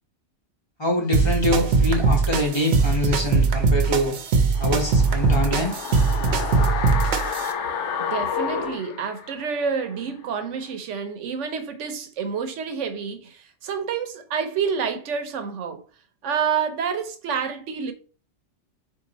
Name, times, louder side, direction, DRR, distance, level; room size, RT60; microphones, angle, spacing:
voice 1, 0.8-4.1 4.6-5.8, left 1 dB, 25° left, 1.0 m, -24 dB
sound 1, 1.1-7.5, right 4 dB, 70° right, 0.9 m, -21 dB
sound 2, 4.5-9.7 10.0-10.1, left 7 dB, 80° left, 1.0 m, -30 dB
voice 2, 8.0-15.8 16.2-17.9, right 6 dB, 90° right, 1.1 m, -28 dB
4.3 x 2.8 x 3.9 m
omnidirectional pair, 1.2 m